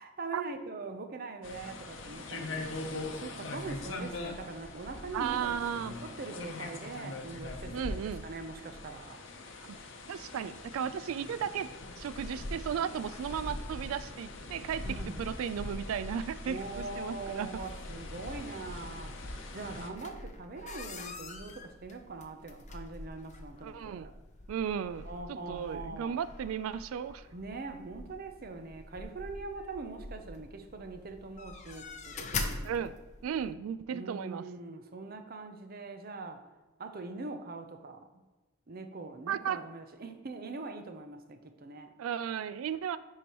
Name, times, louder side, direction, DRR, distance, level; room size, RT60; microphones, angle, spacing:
voice 1, 0.0-2.8 3.2-7.8 8.2-9.2 14.8-15.3 16.4-24.1 25.0-26.3 27.3-32.9 33.9-36.4 36.8-38.1 38.7-41.9, right 3 dB, 45° right, 7 dB, 0.6 m, -42 dB
sound 1, 1.4-19.9, left 2 dB, 65° left, 0.8 m, -42 dB
voice 2, 5.1-6.0 7.7-8.2 9.6-9.8 10.1-11.7 12.0-17.6 23.6-24.1 24.5-27.3 32.6-32.9 33.2-34.5 39.3-39.6 42.0-43.0, right 8 dB, 85° right, 14 dB, 0.3 m, -35 dB
sound 2, 19.9-33.5, left 3 dB, 35° left, 0.6 m, -44 dB
10.5 x 4.7 x 3.0 m, 1.2 s
head